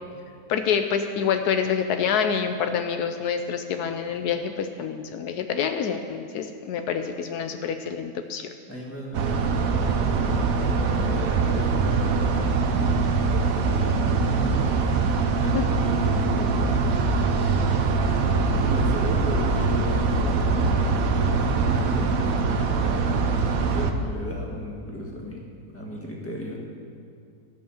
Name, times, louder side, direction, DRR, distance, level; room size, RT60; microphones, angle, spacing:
voice 1, 0.5-8.5 15.5-15.6, left 7 dB, 80° left, 7 dB, 1.1 m, -27 dB
voice 2, 8.7-13.0 13.3-14.8 15.3-17.8 18.5-25.4 25.7-26.6, equal, 10° left, -2 dB, 1.6 m, -36 dB
sound 1, 9.1-23.9, right 4 dB, 65° right, 1.1 m, -23 dB
14.0 x 5.5 x 7.1 m, 2.3 s
omnidirectional pair, 1.7 m